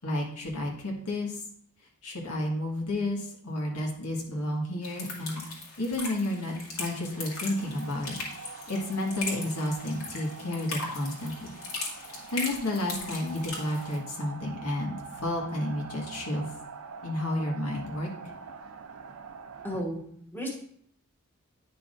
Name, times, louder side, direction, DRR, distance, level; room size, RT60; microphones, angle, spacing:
voice 1, 0.0-1.4 2.0-5.4 5.8-11.5 12.1-16.5 17.0-18.1, left 1 dB, 90° left, -1 dB, 1.7 m, -31 dB
sound 1, 4.8-14.0, left 3 dB, 65° left, 2.1 m, -39 dB
sound 2, 6.8-19.8, right 5 dB, 65° right, 0.6 m, -45 dB
voice 2, 19.6-20.5, equal, 10° left, -2 dB, 1.3 m, -34 dB
9.4 x 5.8 x 2.6 m, 0.63 s
head